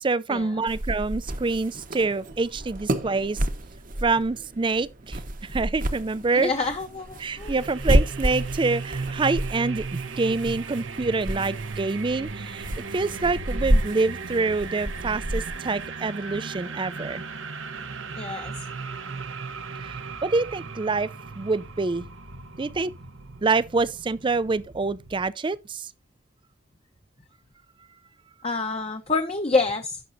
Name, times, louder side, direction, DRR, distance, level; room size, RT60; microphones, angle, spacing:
voice 1, 0.0-3.4 4.0-6.5 7.2-12.7 12.9-17.2 19.8-21.1 21.4-22.1 22.6-22.9 23.4-25.9, right 3 dB, 25° right, 0.4 m, -26 dB
sound 1, 0.7-15.9, right 1 dB, 45° right, 1.0 m, -30 dB
voice 2, 6.3-7.5 18.2-18.7 28.4-30.0, left 3 dB, 30° left, 0.9 m, -27 dB
sound 2, 7.4-25.3, right 4 dB, 80° right, 1.1 m, -36 dB
16.5 x 6.1 x 2.6 m
head